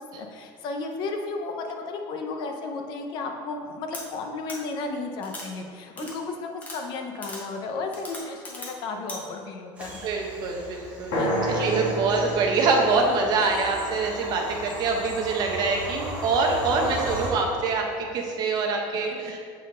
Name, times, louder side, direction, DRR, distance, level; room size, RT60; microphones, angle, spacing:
voice 1, 0.1-10.1 11.2-11.5 12.2-12.3 16.9-17.0 19.1-19.2, left 3 dB, 45° left, 4 dB, 0.6 m, -34 dB
sound 1, 3.9-4.0 4.5-4.6 5.2-5.5 6.0-6.1 6.6-6.8 7.2-7.4 7.9-8.7 9.1-9.2, left 2 dB, 15° left, 0.9 m, -38 dB
Bird vocalization bird call bird song / Train, 9.8-17.3, right 1 dB, 10° right, 1.1 m, -37 dB
voice 2, 10.0-19.4, right 4 dB, 40° right, 2 dB, 0.7 m, -25 dB
sound 2, 11.1-15.0, equal, 60° left, 1.6 m, -31 dB
7.3 x 4.3 x 3.7 m, 2.2 s
cardioid pair, 175°, 11 cm